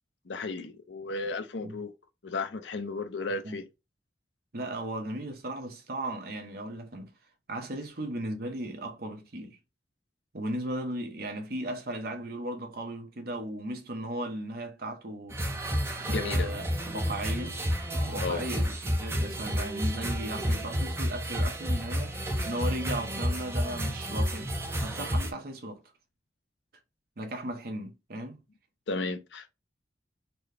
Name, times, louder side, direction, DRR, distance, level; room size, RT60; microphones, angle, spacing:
voice 1, 0.3-1.9 2.2-3.6 16.1-16.5 18.2-18.5 28.9-29.5, left 3 dB, 90° left, 0.6 m, -34 dB
voice 2, 4.5-7.1 7.5-9.6 10.3-15.4 16.0-17.6 17.9-24.5 24.8-25.8 27.2-28.4, right 1 dB, 60° right, 0.9 m, -36 dB
sound 1, 15.3-25.3, equal, 15° right, 0.6 m, -30 dB
4.1 x 2.2 x 3.3 m
head